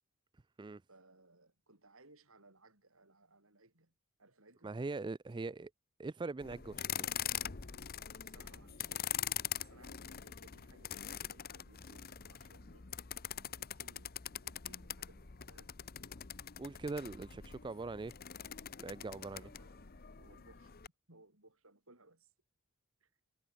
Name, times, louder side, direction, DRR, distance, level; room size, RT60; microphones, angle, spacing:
voice 1, 0.9-3.9 4.2-4.8 8.2-12.9 13.3-15.9 19.2-20.7 21.1-22.3 23.0-23.1, right 2 dB, 65° right, 5.9 m, -64 dB
voice 2, 4.6-5.7 6.0-7.0 16.6-18.1 18.8-19.4, right 3 dB, 20° right, 0.4 m, -41 dB
sound 1, 6.4-20.9, left 10 dB, 45° left, 0.9 m, -43 dB
head